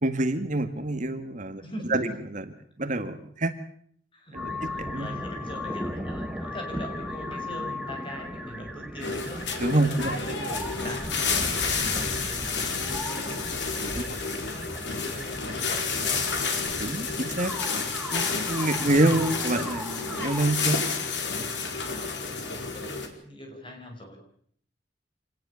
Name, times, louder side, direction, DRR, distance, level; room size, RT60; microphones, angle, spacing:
voice 1, 0.0-1.6 1.9-2.1 2.3-2.4 2.8-3.5 4.3-4.5 4.8-5.1 9.6-10.1 13.8-13.9 16.8-17.5 18.1-20.8, right 2 dB, 45° right, 8 dB, 1.9 m, -26 dB
voice 2, 1.6-2.2 4.1-16.5 18.8-19.3 22.0-24.2, equal, 30° left, 3 dB, 7.0 m, -42 dB
sound 1, 4.3-20.5, left 1 dB, 5° right, 1.9 m, -37 dB
sound 2, 9.0-23.1, left 5 dB, 80° left, 4.7 m, -30 dB
27.0 x 19.5 x 7.1 m, 0.63 s
head